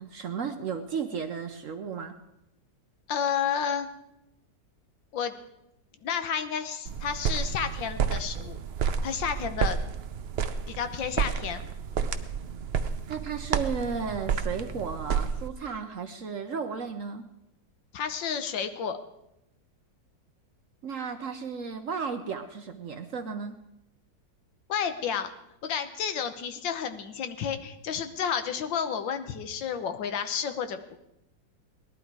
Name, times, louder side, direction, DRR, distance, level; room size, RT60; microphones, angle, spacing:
voice 1, 0.0-2.2 13.1-17.2 20.8-23.6, right 6 dB, 60° right, 7 dB, 0.9 m, -34 dB
voice 2, 3.1-3.9 5.1-5.3 6.0-8.6 9.0-9.8 10.7-11.6 17.9-19.0 24.7-25.3 25.6-31.0, left 7 dB, 80° left, 9 dB, 1.7 m, -31 dB
sound 1, 6.8-15.5, right 7 dB, 90° right, 0.5 m, -31 dB
18.5 x 11.5 x 4.7 m, 0.85 s
omnidirectional pair, 2.0 m